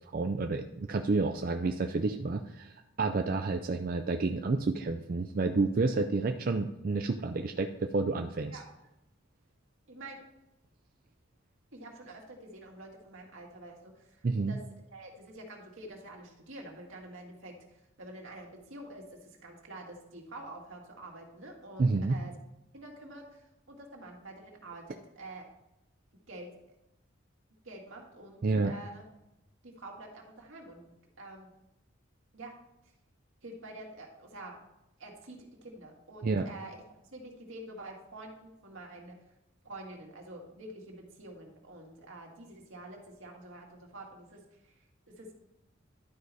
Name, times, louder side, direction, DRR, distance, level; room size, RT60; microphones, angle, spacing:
voice 1, 0.1-8.6 14.2-14.6 21.8-22.2 28.4-28.7 36.2-36.5, right 3 dB, 45° right, 5 dB, 0.4 m, -30 dB
voice 2, 9.9-10.2 11.7-14.6 14.9-22.3 22.7-25.4 26.3-26.5 27.6-29.0 29.6-30.9 31.2-31.5 32.3-32.6 33.4-34.6 35.0-36.8 37.1-39.2 39.6-44.8 45.1-45.3, right 1 dB, 80° right, 0 dB, 1.9 m, -47 dB
11.5 x 4.8 x 4.1 m, 0.90 s
head